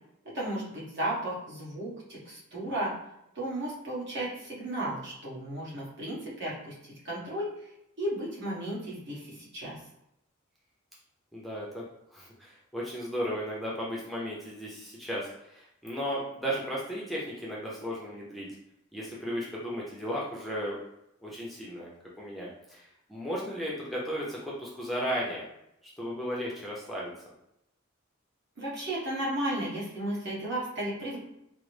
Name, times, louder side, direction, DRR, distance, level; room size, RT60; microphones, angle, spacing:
voice 1, 0.3-2.9 3.3-7.7 8.0-9.8 28.6-31.2, right 1 dB, 60° right, -6 dB, 1.2 m, -34 dB
voice 2, 11.3-11.8 12.1-18.5 18.9-20.8 21.2-21.9 22.2-25.5 26.0-27.1, equal, ahead, -5 dB, 0.5 m, -35 dB
3.8 x 2.0 x 3.2 m, 0.82 s
head